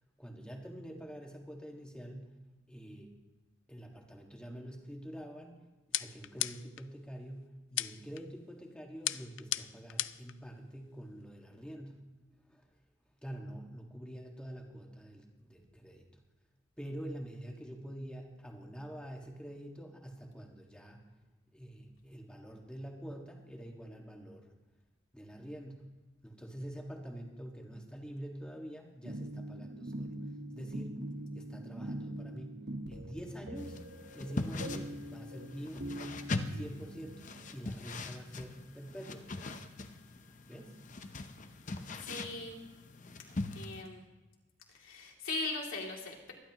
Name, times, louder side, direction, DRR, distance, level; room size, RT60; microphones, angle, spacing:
voice 1, 0.2-2.4 2.7-3.1 3.7-5.6 5.9-12.0 12.3-12.7 13.2-16.1 16.8-21.0 21.5-24.5 25.1-25.9 26.2-30.1 30.5-31.0 31.3-33.8 34.1-35.9 36.5-39.3 40.5-40.8, equal, 5° left, 0 dB, 1.7 m, -46 dB
sound 1, 5.9-6.9 7.8-8.2 9.1-10.3, left 15 dB, 70° left, 0.4 m, -35 dB
sound 2, 29.0-37.3, right 1 dB, 55° right, 1.2 m, -43 dB
sound 3, 33.6-43.8, left 2 dB, 40° left, 0.7 m, -41 dB
voice 2, 42.0-42.6 43.5-44.0 44.7-46.3, left 2 dB, 90° left, -1 dB, 2.7 m, -39 dB
24.5 x 11.5 x 3.0 m, 1.1 s
head